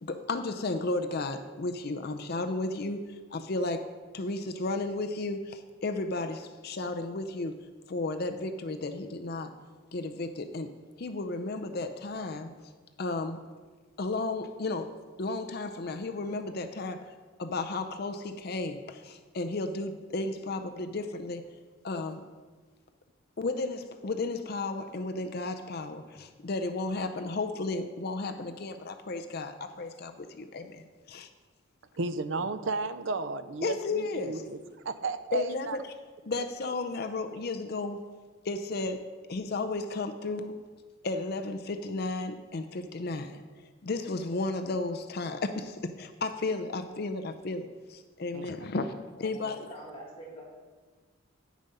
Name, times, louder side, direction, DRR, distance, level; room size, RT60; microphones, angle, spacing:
voice 1, 0.0-3.9 4.1-9.5 9.9-10.7 11.0-12.5 13.0-13.4 14.0-21.5 21.8-22.2 23.4-31.3 33.6-34.4 35.3-35.9 36.2-38.0 38.4-39.0 39.3-40.6 41.0-43.4 43.8-49.7, left 2 dB, 45° left, 8 dB, 0.5 m, -33 dB
voice 2, 32.0-34.6 34.8-35.8 48.3-48.5, right 3 dB, 65° right, 11 dB, 0.6 m, -33 dB
voice 3, 49.3-50.4, right 1 dB, 25° left, -4 dB, 2.1 m, -45 dB
9.7 x 7.2 x 5.4 m, 1.4 s
head